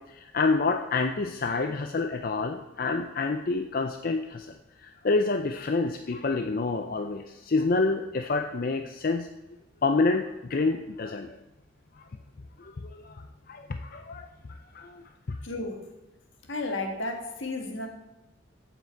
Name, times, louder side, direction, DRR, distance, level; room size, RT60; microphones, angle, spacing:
voice 1, 0.0-4.5 4.8-9.3 9.8-11.4 12.6-14.3 14.7-15.4, left 3 dB, 45° left, 6 dB, 0.5 m, -28 dB
voice 2, 15.4-15.9 16.4-17.9, left 2 dB, 75° left, 4 dB, 1.6 m, -33 dB
15.0 x 6.0 x 4.5 m, 0.99 s
head